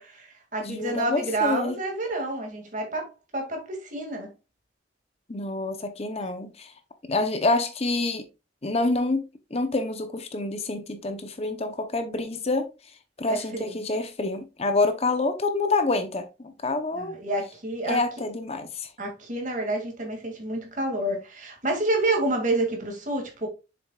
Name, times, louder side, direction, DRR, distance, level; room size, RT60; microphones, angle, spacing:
voice 1, 0.0-4.3 13.3-13.8 16.9-18.0 19.0-23.5, right 2 dB, 40° right, 2.3 m, -29 dB
voice 2, 0.6-1.7 5.3-6.7 7.1-8.3 8.6-9.2 9.5-12.7 13.2-17.1 17.8-18.9, left 2 dB, 35° left, 0.8 m, -27 dB
7.3 x 7.0 x 2.4 m
head